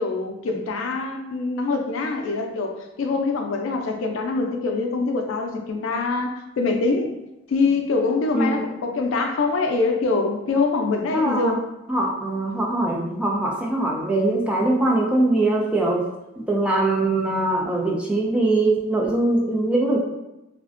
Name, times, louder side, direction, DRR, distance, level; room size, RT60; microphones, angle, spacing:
voice 1, 0.0-7.1 7.5-11.6, left 3 dB, 90° left, 3 dB, 0.4 m, -24 dB
voice 2, 11.1-11.5 11.9-16.1 16.4-20.0, right 2 dB, 5° right, -2 dB, 0.3 m, -22 dB
2.4 x 2.1 x 2.4 m, 0.95 s
head